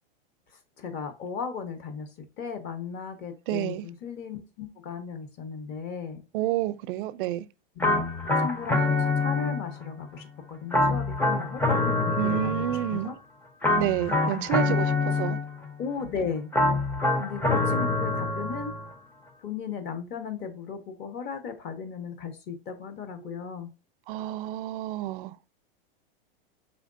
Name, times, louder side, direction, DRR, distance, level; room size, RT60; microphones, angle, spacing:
voice 1, 0.8-2.1 2.4-6.2 7.8-8.0 8.4-13.1 14.2-14.8 15.8-16.5 17.2-18.7 19.4-23.7, left 6 dB, 35° left, 1.0 m, -36 dB
voice 2, 3.5-3.9 6.3-7.5 12.2-13.1 13.8-15.4 23.3-23.4 24.1-25.3, right 13 dB, 60° right, 0.5 m, -29 dB
sound 1, 7.8-9.9 10.7-13.1 13.6-15.7 16.5-18.9, left 2 dB, 5° left, 0.5 m, -26 dB
4.9 x 3.1 x 2.5 m
supercardioid pair, 135°, 29 cm